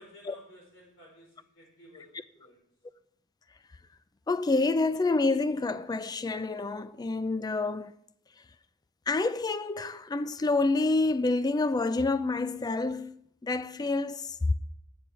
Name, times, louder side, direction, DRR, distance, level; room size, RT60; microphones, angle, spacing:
voice 1, 0.0-2.6, left 1 dB, 85° left, 5.2 m, -54 dB
voice 2, 4.3-7.9 9.1-14.5, left 3 dB, 20° left, 0.4 m, -28 dB
9.8 x 6.9 x 6.2 m
head